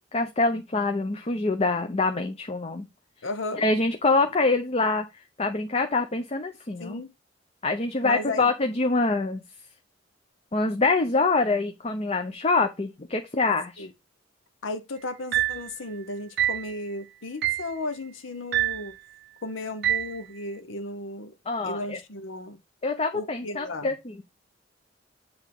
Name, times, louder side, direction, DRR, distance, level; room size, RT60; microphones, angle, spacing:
voice 1, 0.1-2.9 3.6-5.0 5.4-7.0 7.6-9.4 10.5-13.9 21.5-22.0 22.8-24.2, left 3 dB, 35° left, 0.7 m, -25 dB
voice 2, 3.2-3.6 6.8-7.1 8.0-8.5 13.8-13.9 14.6-18.9 19.4-21.3 21.6-22.6 23.1-23.9, left 2 dB, 85° left, 0.9 m, -35 dB
sound 1, 15.3-15.7 16.4-16.7 17.4-17.7 18.5-18.9 19.8-20.2, right 13 dB, 60° right, 0.5 m, -25 dB
7.9 x 3.6 x 5.3 m
head